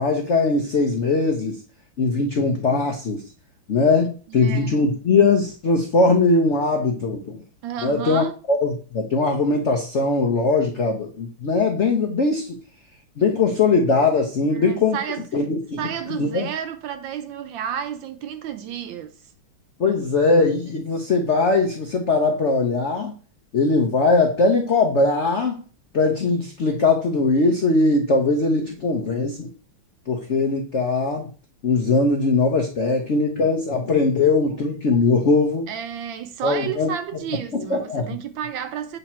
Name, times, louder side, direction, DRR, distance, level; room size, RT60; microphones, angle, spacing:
voice 1, 0.0-1.6 2.0-3.2 3.7-7.4 7.8-12.5 13.2-15.0 15.3-15.8 16.1-16.5 19.8-23.1 23.5-25.6 25.9-29.5 30.1-31.3 31.6-35.7 36.4-36.9 37.5-38.1, left 3 dB, 80° left, 0.6 m, -20 dB
voice 2, 4.3-4.8 7.6-8.4 14.5-15.3 15.8-19.1 35.7-39.0, right 9 dB, 75° right, 1.2 m, -31 dB
8.1 x 3.0 x 4.3 m
omnidirectional pair, 2.4 m